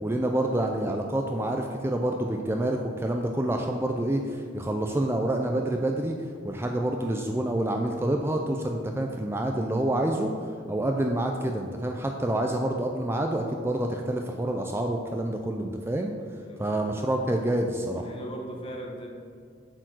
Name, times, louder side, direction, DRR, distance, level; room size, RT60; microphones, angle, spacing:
voice 1, 0.0-6.1 6.4-16.1 16.6-18.0, right 1 dB, 15° right, 3 dB, 0.4 m, -27 dB
voice 2, 16.4-16.8 17.9-19.1, right 1 dB, 30° left, 0 dB, 1.1 m, -39 dB
7.7 x 4.6 x 6.1 m, 2.2 s
head